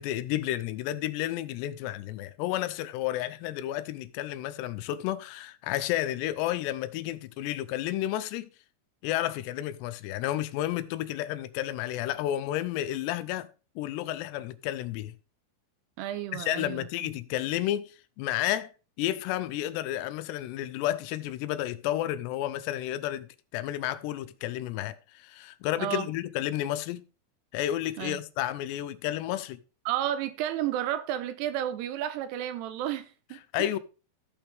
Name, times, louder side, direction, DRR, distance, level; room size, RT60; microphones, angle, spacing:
voice 1, 0.0-8.5 9.0-13.5 13.8-15.1 16.3-18.7 19.0-27.0 27.5-29.6 33.5-33.8, left 13 dB, 85° left, 2.7 m, -31 dB
voice 2, 16.0-16.9 25.8-26.1 28.0-28.2 29.9-33.7, right 11 dB, 80° right, 2.7 m, -32 dB
14.5 x 5.8 x 3.5 m
omnidirectional pair, 4.9 m